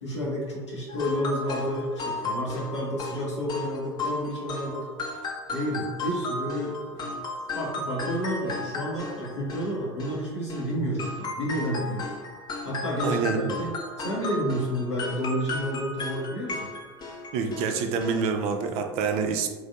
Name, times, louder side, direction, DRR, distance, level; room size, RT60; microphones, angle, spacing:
voice 1, 0.0-4.9 5.5-7.2 7.5-12.2 12.6-16.7, equal, 80° left, -5 dB, 0.9 m, -30 dB
sound 1, 0.9-10.7 11.0-17.7 18.0-18.2 18.5-18.6, left 2 dB, 30° left, 0.5 m, -35 dB
voice 2, 13.0-13.6 17.3-19.5, right 5 dB, 45° right, 5 dB, 0.4 m, -27 dB
3.1 x 2.5 x 2.4 m, 1.3 s
figure-of-eight pair, 75°, 15 cm